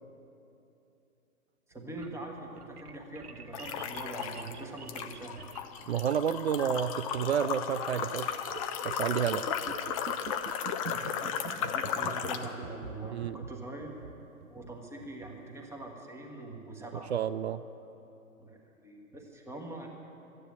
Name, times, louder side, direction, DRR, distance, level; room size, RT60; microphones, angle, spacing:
voice 1, 1.7-5.5 10.9-14.0 14.5-17.1 18.4-18.6 18.8-19.9, right 2 dB, 5° right, 0 dB, 1.5 m, -43 dB
sound 1, 1.7-15.8, right 6 dB, 90° right, 0.9 m, -46 dB
sound 2, 3.5-4.5 4.9-12.5, left 8 dB, 25° left, 0.6 m, -35 dB
voice 2, 5.9-8.3 8.8-9.5 13.1-13.4 16.9-17.6, right 8 dB, 50° right, 14 dB, 0.5 m, -30 dB
13.5 x 9.9 x 9.4 m, 2.9 s
figure-of-eight pair, 125°, 44 cm